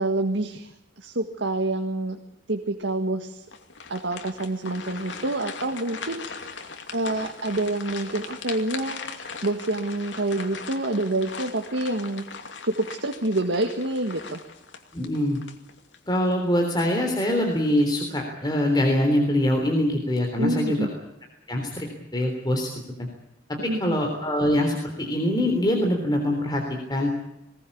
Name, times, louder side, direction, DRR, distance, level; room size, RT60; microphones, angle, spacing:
voice 1, 0.0-2.2 2.5-3.4 3.9-6.7 6.9-9.0 9.4-12.2 12.6-14.4 20.4-20.9 23.7-24.0, right 2 dB, 80° right, 5 dB, 1.8 m, -27 dB
sound 1, 3.5-16.1 16.6-16.7 17.3-17.8, left 5 dB, 80° left, 2.6 m, -39 dB
voice 2, 14.9-15.4 16.1-20.9 21.5-21.9 22.1-22.7 23.0-23.1 23.6-27.1, left 1 dB, 25° left, 2 dB, 3.6 m, -24 dB
21.5 x 18.5 x 8.6 m, 0.87 s
head